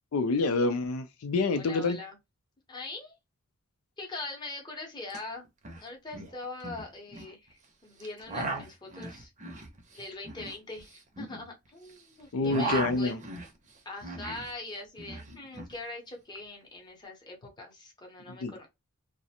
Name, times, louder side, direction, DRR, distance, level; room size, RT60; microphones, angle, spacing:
voice 1, 0.1-2.0 12.3-13.2 18.4-18.5, left 3 dB, 80° left, 0.4 m, -27 dB
voice 2, 1.5-2.2 2.7-3.2 4.0-5.5 5.8-9.3 9.9-13.2 13.8-18.7, left 2 dB, 20° left, 0.7 m, -42 dB
sound 1, 5.1-5.2 5.4-5.8 6.1-7.3 8.0-12.0 12.2-14.5 14.8-15.7, right 3 dB, 35° right, 0.6 m, -38 dB
2.5 x 2.0 x 2.7 m
head